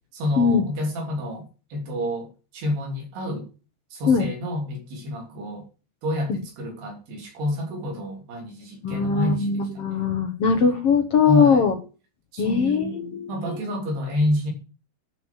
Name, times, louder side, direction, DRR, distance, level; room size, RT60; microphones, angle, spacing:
voice 1, 0.1-1.5 1.7-3.5 3.9-5.7 6.0-10.1 11.2-11.7 12.3-14.5, left 1 dB, 70° right, 2 dB, 5.1 m, -29 dB
voice 2, 8.8-11.7 12.4-13.6, left 5 dB, 70° left, 4 dB, 1.4 m, -21 dB
11.5 x 6.4 x 7.5 m, 0.34 s
omnidirectional pair, 5.0 m